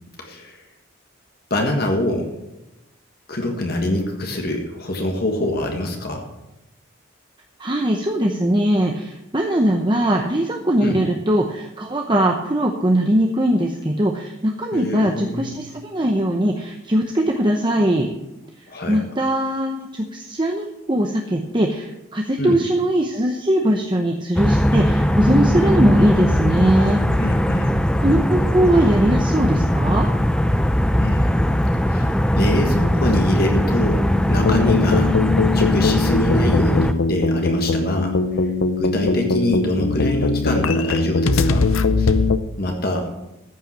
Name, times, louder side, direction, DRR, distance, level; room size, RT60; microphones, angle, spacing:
voice 1, 0.2-0.6 1.5-2.3 3.3-6.2 10.8-11.0 14.7-15.5 18.7-19.0 22.4-22.6 27.2-27.7 31.0-31.5 31.9-35.2 35.5-38.1 38.8-41.7 42.0-42.1 42.6-43.1, left 1 dB, 50° left, 2 dB, 1.6 m, -24 dB
voice 2, 7.6-18.1 18.9-27.0 28.0-30.1, right 1 dB, 20° right, 2 dB, 0.8 m, -20 dB
sound 1, 24.4-36.9, equal, 5° left, 0.4 m, -19 dB
sound 2, 34.4-42.4, left 3 dB, 80° left, 0.6 m, -20 dB
14.0 x 5.7 x 7.5 m, 0.94 s
head